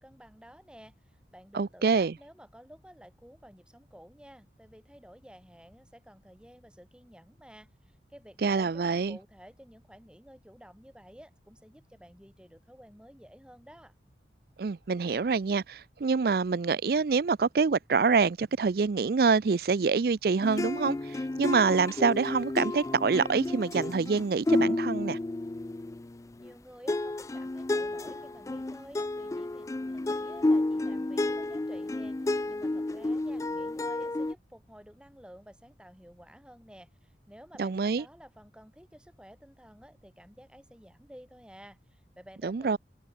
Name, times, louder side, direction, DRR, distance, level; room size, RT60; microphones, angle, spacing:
voice 1, 0.0-14.0 26.4-42.8, equal, 5° right, 6.3 m, -52 dB
voice 2, 1.5-2.1 8.4-9.2 14.6-25.2 37.6-38.0 42.4-42.8, right 5 dB, 55° right, 0.4 m, -26 dB
sound 1, 20.4-26.5 26.9-34.3, left 2 dB, 20° left, 0.3 m, -31 dB
open air
head